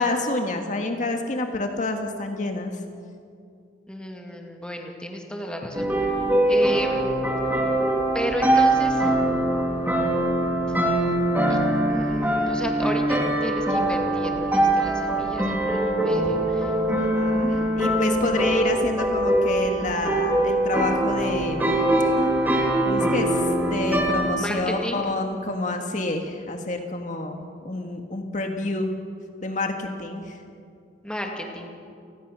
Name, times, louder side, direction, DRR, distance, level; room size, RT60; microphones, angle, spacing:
voice 1, 0.0-2.8 16.9-21.7 22.9-27.4 27.6-28.9 29.4-30.4, left 2 dB, 45° left, 4 dB, 1.8 m, -28 dB
voice 2, 3.9-5.9 6.5-7.2 8.1-9.2 11.5-11.6 11.9-16.7 17.5-18.2 24.4-25.0 31.0-31.7, equal, 5° left, 2 dB, 2.3 m, -33 dB
sound 1, 5.7-24.3, right 1 dB, 10° right, 2.9 m, -22 dB
29.0 x 20.0 x 6.3 m, 2.4 s
head